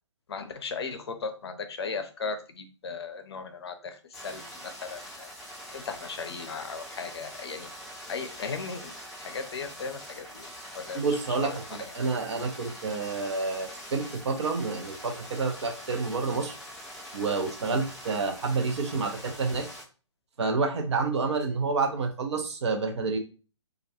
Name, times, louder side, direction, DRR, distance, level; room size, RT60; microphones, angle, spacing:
voice 1, 0.3-4.0 4.2-5.3 5.7-7.7 8.1-8.9 9.2-11.6, left 5 dB, 55° left, 8 dB, 0.5 m, -37 dB
sound 1, 4.1-19.8, equal, ahead, 0.6 m, -44 dB
voice 2, 10.9-16.5 17.1-19.7 20.4-23.2, right 4 dB, 60° right, 5 dB, 0.7 m, -29 dB
2.3 x 2.2 x 2.8 m, 0.35 s
figure-of-eight pair, 135°, 16 cm